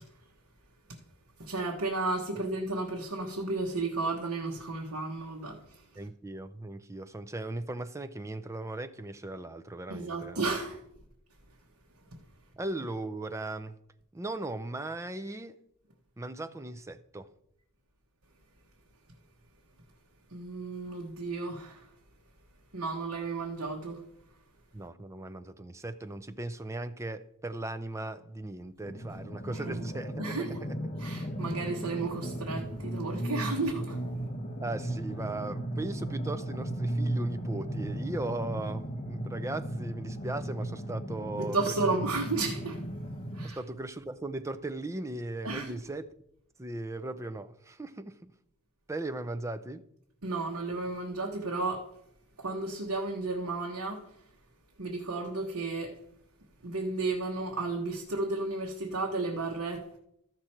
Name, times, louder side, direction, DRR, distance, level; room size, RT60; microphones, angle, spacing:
voice 1, 1.4-5.6 9.9-10.8 20.3-21.8 22.7-24.0 29.6-29.8 30.2-30.6 31.0-34.0 41.4-42.8 43.3-43.6 45.4-45.8 50.2-51.8 52.4-54.0 54.8-55.9 56.6-60.0, right 3 dB, 70° right, 1.2 m, -33 dB
voice 2, 6.0-10.6 12.5-13.8 14.1-15.6 16.2-17.3 24.7-30.8 34.6-41.7 43.4-46.1 46.6-48.3 48.9-49.8, right 2 dB, 15° right, 0.4 m, -38 dB
sound 1, 28.8-43.5, right 1 dB, 35° left, 0.9 m, -36 dB
14.0 x 6.0 x 4.4 m
head